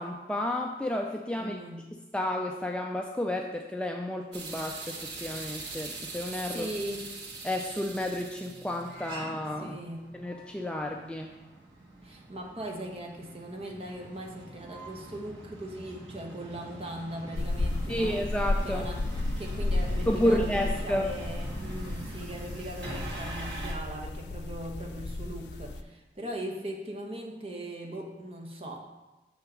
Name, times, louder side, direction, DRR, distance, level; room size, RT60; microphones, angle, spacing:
voice 1, 0.0-1.6 2.1-6.7 7.4-9.8 10.1-11.3 17.9-18.8 20.1-21.0, left 1 dB, 5° left, 1 dB, 0.4 m, -31 dB
voice 2, 1.4-1.9 6.5-7.1 9.6-10.1 12.0-18.2 18.6-19.0 19.4-29.0, right 1 dB, 35° right, 0 dB, 1.1 m, -39 dB
sound 1, 4.3-23.7, right 2 dB, 85° right, 1.7 m, -43 dB
sound 2, 17.3-25.8, left 2 dB, 80° left, 0.5 m, -33 dB
6.8 x 5.8 x 5.2 m, 1.1 s
head